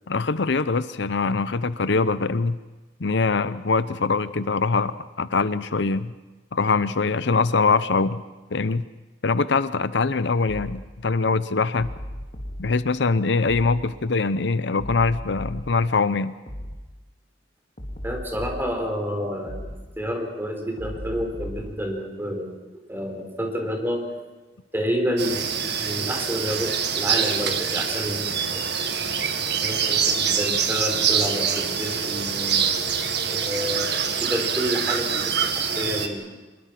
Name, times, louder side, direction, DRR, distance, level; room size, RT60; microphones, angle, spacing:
voice 1, 0.1-2.6 3.0-6.1 6.5-8.2 8.5-8.8 9.2-11.9 12.6-16.3, left 4 dB, 70° left, 14 dB, 0.7 m, -23 dB
sound 1, 10.5-10.8 11.8-12.6 13.5-13.8 14.8-15.7 16.5-16.8 17.8-18.7 19.5-19.8 20.8-21.7, equal, 40° left, 3.1 m, -35 dB
voice 2, 18.0-24.1 24.7-28.6 29.6-32.6 33.3-36.3, equal, 10° right, 2 dB, 4.2 m, -29 dB
sound 2, 25.2-36.1, right 7 dB, 65° right, 1.9 m, -25 dB
25.5 x 22.0 x 6.0 m, 1.2 s
head